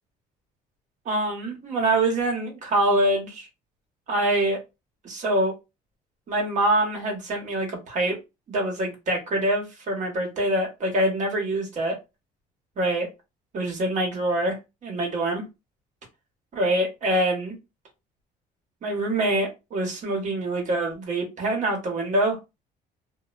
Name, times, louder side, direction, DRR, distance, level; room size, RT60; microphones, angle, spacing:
voice 1, 1.0-3.5 4.1-4.6 5.0-5.5 6.3-8.2 8.5-12.0 12.8-13.1 13.5-14.5 14.8-15.4 16.5-17.6 18.8-22.3, right 1 dB, 45° right, 1.2 m, -25 dB
2.6 x 2.1 x 2.4 m
cardioid pair, 110°, 17 cm